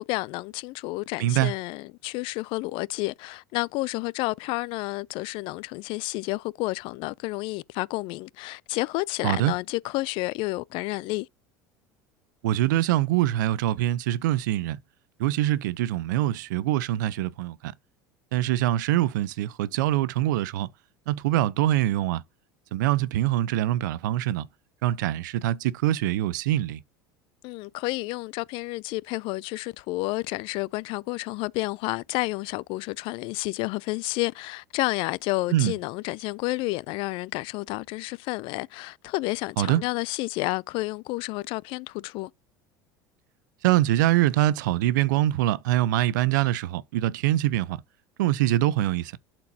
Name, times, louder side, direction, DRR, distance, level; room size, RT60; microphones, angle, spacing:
voice 1, 0.1-11.3 27.4-42.3, left 22 dB, 60° left, 0.4 m, -30 dB
voice 2, 1.2-1.5 9.2-9.5 12.4-14.8 15.2-17.7 18.3-20.7 21.1-22.2 22.7-24.5 24.8-26.8 35.5-35.7 39.6-39.8 43.6-47.8 48.2-49.1, right 14 dB, 75° right, 0.6 m, -24 dB
12.0 x 4.5 x 2.7 m
hypercardioid pair, 85°, 10 cm